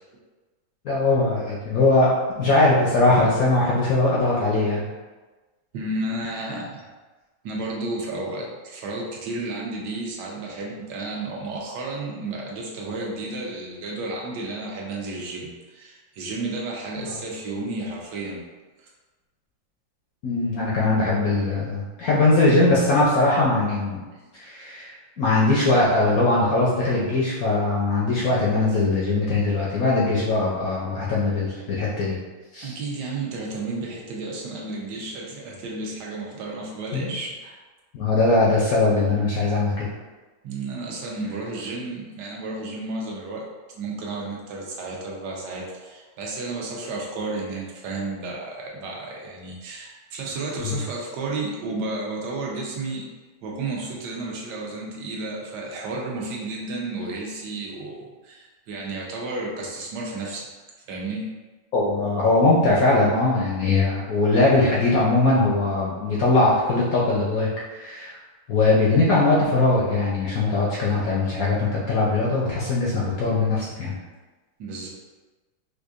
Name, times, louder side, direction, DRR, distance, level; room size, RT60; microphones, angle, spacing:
voice 1, 0.8-2.1 2.4-4.9 20.2-24.0 24.3-32.2 32.5-32.8 36.9-37.1 37.9-39.9 50.6-50.8 61.7-68.2 68.5-73.9, left 2 dB, 70° left, -6 dB, 0.9 m, -21 dB
voice 2, 5.7-6.9 7.4-18.4 18.8-18.9 32.6-37.6 40.4-43.5 43.7-53.1 53.4-60.5 60.9-61.3 74.6-74.9, right 2 dB, 70° right, -2 dB, 1.2 m, -32 dB
4.4 x 2.5 x 2.4 m, 1.2 s
omnidirectional pair, 2.1 m